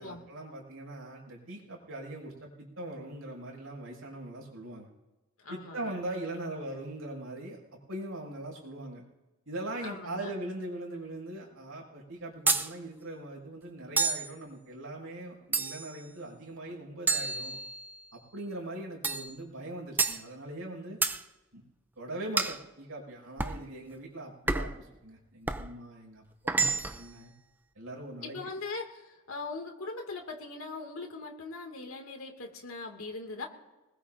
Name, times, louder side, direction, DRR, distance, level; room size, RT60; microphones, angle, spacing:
voice 1, 0.0-4.9 5.5-7.6 7.9-9.0 9.5-17.6 18.1-21.0 21.5-21.6 22.0-27.3 27.8-28.4, right 1 dB, 80° right, -2 dB, 6.0 m, -41 dB
voice 2, 5.4-6.0 9.8-10.3 28.2-33.5, left 3 dB, 80° left, 2 dB, 2.2 m, -40 dB
sound 1, 12.5-12.7 14.0-14.3 15.5-16.0 17.1-18.0 19.0-19.3 20.0-20.2 21.0-21.2 22.4-22.6 23.4-23.6 24.5-24.8 25.5-25.7 26.5-27.1, right 4 dB, 10° right, 0.4 m, -29 dB
24.5 x 21.0 x 2.6 m, 1.1 s
head